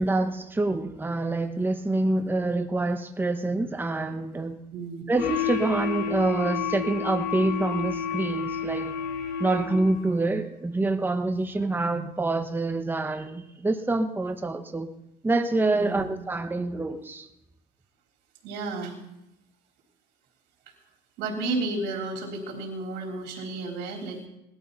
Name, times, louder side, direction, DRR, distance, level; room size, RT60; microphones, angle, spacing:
voice 1, 0.0-4.6 5.1-8.9 9.4-14.9 15.2-17.3, right 2 dB, 10° right, 6 dB, 1.0 m, -26 dB
voice 2, 4.7-5.0 15.7-16.1 18.4-19.0 21.2-24.3, right 3 dB, 90° right, 1 dB, 3.7 m, -32 dB
sound 1, 5.2-10.0, left 7 dB, 65° left, 3.7 m, -30 dB
19.5 x 13.0 x 4.1 m, 0.86 s
cardioid pair, 110°, 17 cm